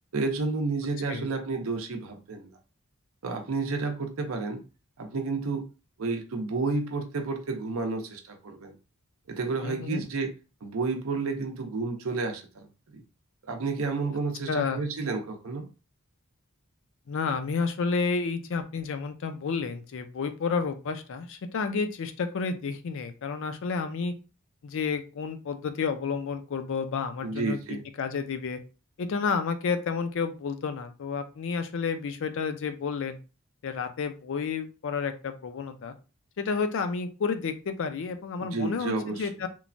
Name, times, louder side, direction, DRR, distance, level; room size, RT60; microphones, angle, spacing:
voice 1, 0.1-2.6 3.2-4.6 5.0-5.7 6.0-8.7 9.3-10.3 10.6-13.0 13.4-15.7 27.2-27.8 38.4-39.3, right 3 dB, 65° right, 0.6 m, -31 dB
voice 2, 9.6-10.0 14.5-14.8 17.1-24.1 24.6-27.6 28.0-28.6 29.0-33.2 33.6-35.9 36.4-39.5, left 5 dB, 60° left, 0.4 m, -30 dB
3.0 x 2.1 x 2.5 m
head